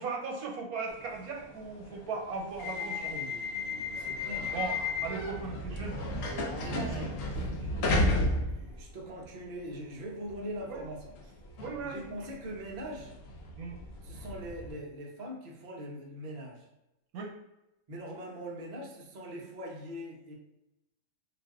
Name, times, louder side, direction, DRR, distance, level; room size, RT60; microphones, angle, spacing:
voice 1, 0.0-3.1 4.5-6.7 10.7-10.8 11.6-12.1 13.6-13.8 17.1-17.3, right 4 dB, 85° right, 1 dB, 1.1 m, -38 dB
sound 1, 0.9-9.3 9.7-14.7, left 2 dB, 70° left, 0.9 m, -34 dB
voice 2, 2.6-4.5 6.6-8.1 8.5-11.3 11.8-13.2 14.0-16.7 17.9-20.3, right 1 dB, 60° right, -1 dB, 0.5 m, -42 dB
2.4 x 2.4 x 3.4 m, 0.93 s
omnidirectional pair, 1.5 m